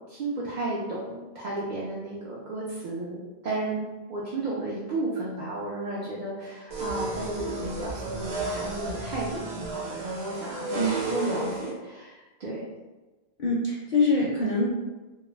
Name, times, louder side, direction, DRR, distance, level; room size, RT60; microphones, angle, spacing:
voice 1, 0.1-3.2 3.4-3.8 4.1-12.6, right 2 dB, 55° right, -5 dB, 0.5 m, -33 dB
sound 1, 6.7-11.7, right 3 dB, 80° right, 0.9 m, -33 dB
voice 2, 13.4-14.7, left 2 dB, 60° left, -5 dB, 0.6 m, -24 dB
2.3 x 2.2 x 3.1 m, 1.2 s
omnidirectional pair, 1.1 m